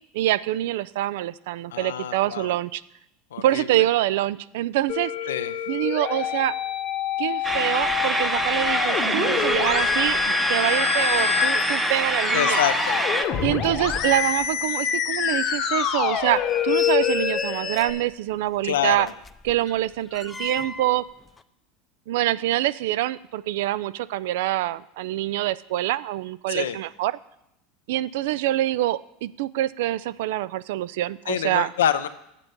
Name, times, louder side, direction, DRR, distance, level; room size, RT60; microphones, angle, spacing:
voice 1, 0.1-2.8 3.4-5.3 5.7-6.6 7.2-12.6 13.4-19.1 19.4-21.0 22.1-27.1 27.9-31.7, right 15 dB, 75° right, 18 dB, 0.3 m, -25 dB
voice 2, 1.7-2.5 3.3-3.9 5.3-5.5 12.3-13.0 18.6-19.1 26.5-26.8 31.3-32.1, left 10 dB, 90° left, 12 dB, 0.5 m, -26 dB
Musical instrument, 4.9-17.9, left 9 dB, 50° left, 1.0 m, -26 dB
sound 1, 7.4-13.3, right 2 dB, 10° right, 0.8 m, -25 dB
sound 2, 9.0-9.1 9.3-10.3 10.6-14.5 14.9-15.0 15.5-15.6 16.2-18.1 19.0-21.0 21.3-21.4, left 3 dB, 20° left, 0.4 m, -36 dB
8.2 x 7.3 x 5.2 m, 0.81 s
hypercardioid pair, 100°, 0 cm